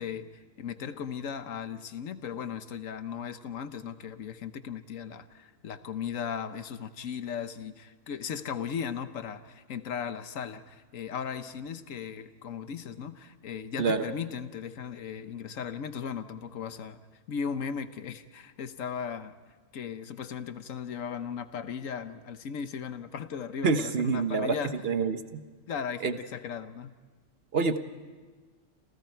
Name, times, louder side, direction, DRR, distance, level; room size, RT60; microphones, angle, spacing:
voice 1, 0.0-17.0 17.3-19.3 19.7-24.8 25.7-26.9, left 7 dB, 90° left, 11 dB, 1.4 m, -37 dB
voice 2, 23.6-24.6 24.8-25.4 26.0-26.1 27.5-27.8, right 4 dB, 50° right, 9 dB, 1.2 m, -26 dB
28.0 x 28.0 x 4.6 m, 1.4 s
omnidirectional pair, 1.3 m